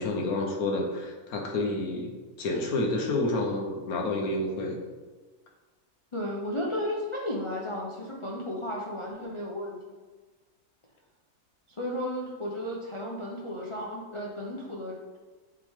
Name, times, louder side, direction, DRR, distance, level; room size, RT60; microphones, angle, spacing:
voice 1, 0.0-2.1 2.4-4.8, left 2 dB, 70° left, 1 dB, 1.3 m, -29 dB
voice 2, 6.1-9.8 11.7-15.0, left 1 dB, 40° left, -4 dB, 0.4 m, -34 dB
8.5 x 3.2 x 3.5 m, 1.3 s
omnidirectional pair, 1.6 m